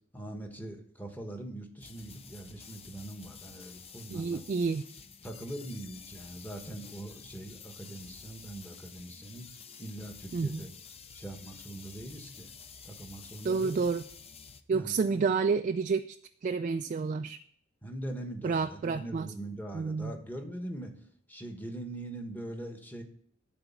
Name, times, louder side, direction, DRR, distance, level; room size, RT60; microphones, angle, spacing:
voice 1, 0.1-4.4 5.2-9.5 9.8-10.7 11.1-12.5 12.8-13.8 14.7-15.3 17.8-20.9 21.3-23.0, right 1 dB, 10° left, 3 dB, 1.3 m, -42 dB
sound 1, 1.8-14.6, left 6 dB, 30° left, 0.6 m, -50 dB
voice 2, 4.1-4.8 10.3-10.6 13.4-14.0 14.7-16.2 16.4-17.4 18.4-19.3 19.7-20.1, right 5 dB, 40° right, 7 dB, 0.3 m, -29 dB
11.5 x 4.2 x 7.1 m, 0.62 s
head